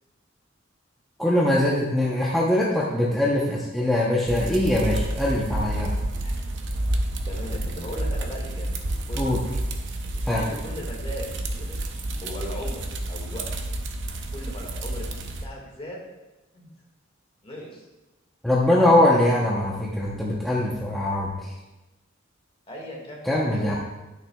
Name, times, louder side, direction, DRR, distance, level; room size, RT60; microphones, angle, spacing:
voice 1, 1.2-5.9 9.1-9.4 10.3-10.4 18.4-21.3 23.3-23.7, left 1 dB, ahead, -6 dB, 0.8 m, -22 dB
sound 1, 4.3-15.4, right 1 dB, 65° right, 0.7 m, -30 dB
voice 2, 7.3-8.7 9.1-9.3 10.2-13.5 14.3-15.1 15.4-16.0 16.5-16.7 17.4-17.9 22.7-23.8, equal, 30° left, -2 dB, 1.8 m, -38 dB
11.5 x 6.3 x 2.3 m, 1.1 s
head